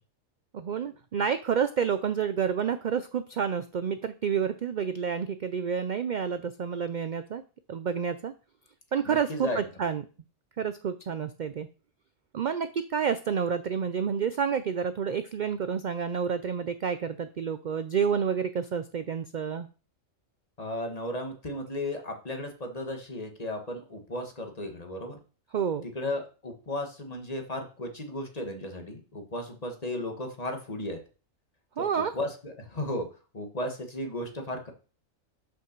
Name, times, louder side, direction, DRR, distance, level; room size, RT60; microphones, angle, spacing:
voice 1, 0.5-7.4 7.7-8.3 8.9-10.0 10.6-11.7 12.3-19.7 25.5-25.8 31.8-32.1, right 7 dB, 65° right, 11 dB, 0.4 m, -29 dB
voice 2, 9.0-9.6 20.6-25.2 25.9-31.0 31.8-33.1 33.3-34.7, left 1 dB, 30° left, 4 dB, 1.4 m, -35 dB
6.2 x 5.5 x 6.6 m, 0.36 s
omnidirectional pair, 1.4 m